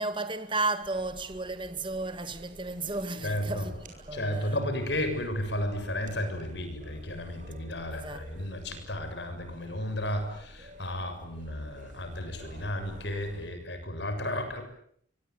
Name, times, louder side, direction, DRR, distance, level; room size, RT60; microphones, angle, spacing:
voice 1, 0.0-4.6 7.9-8.3, right 2 dB, 25° right, 2.1 m, -33 dB
sound 1, 0.8-13.5, equal, 40° right, 7.8 m, -50 dB
voice 2, 3.2-3.7 4.1-14.6, left 1 dB, 65° left, 7.0 m, -33 dB
25.0 x 24.5 x 9.3 m
head